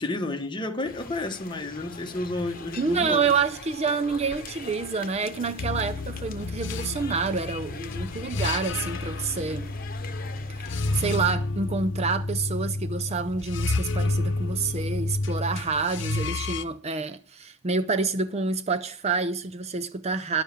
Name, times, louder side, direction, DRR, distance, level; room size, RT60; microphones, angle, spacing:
voice 1, 0.0-3.2, left 2 dB, 25° left, 1.3 m, -31 dB
sound 1, 0.8-11.1, left 4 dB, 45° left, 1.2 m, -42 dB
voice 2, 2.8-9.7 10.5-10.7 10.9-20.4, right 4 dB, 30° right, 0.5 m, -28 dB
sound 2, 5.6-16.6, left 2 dB, 65° left, 0.9 m, -30 dB
11.0 x 7.4 x 7.0 m
head